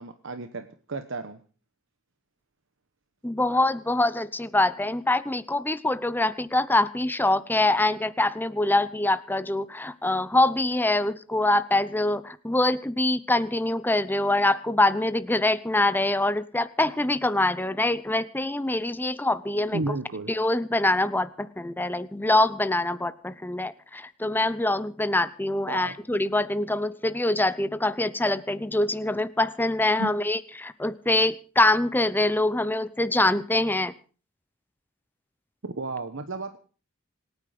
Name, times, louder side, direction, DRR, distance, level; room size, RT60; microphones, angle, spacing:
voice 1, 0.0-1.4 19.7-20.3 25.7-25.9 30.0-30.1 35.6-36.6, right 2 dB, 65° right, 9 dB, 1.1 m, -33 dB
voice 2, 3.2-19.8 20.3-33.9, left 2 dB, 10° left, 14 dB, 0.7 m, -24 dB
26.0 x 9.7 x 5.0 m, 0.39 s
head